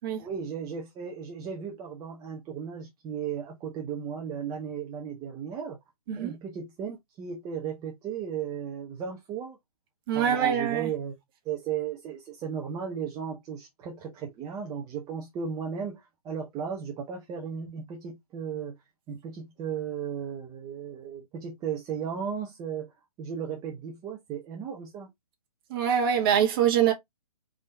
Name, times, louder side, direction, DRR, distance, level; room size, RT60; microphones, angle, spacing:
voice 1, 0.2-5.8 6.2-9.6 10.1-11.2 11.4-18.8 19.1-25.1, right 7 dB, 20° right, 0.9 m, -35 dB
voice 2, 10.1-10.9 25.7-26.9, right 9 dB, 35° right, 1.6 m, -24 dB
3.7 x 3.6 x 3.7 m
hypercardioid pair, 135°, 19 cm